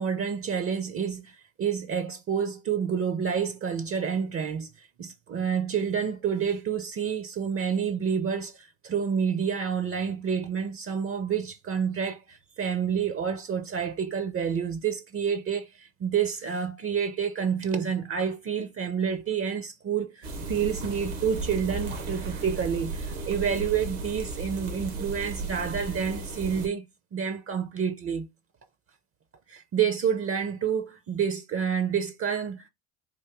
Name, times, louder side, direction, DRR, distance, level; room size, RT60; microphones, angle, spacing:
voice 1, 0.0-26.9 27.1-28.3 29.5-32.7, right 7 dB, 30° right, 0.6 m, -29 dB
sound 1, 20.2-26.7, right 3 dB, 80° right, 1.5 m, -35 dB
3.7 x 2.5 x 3.5 m
hypercardioid pair, 75°, 43 cm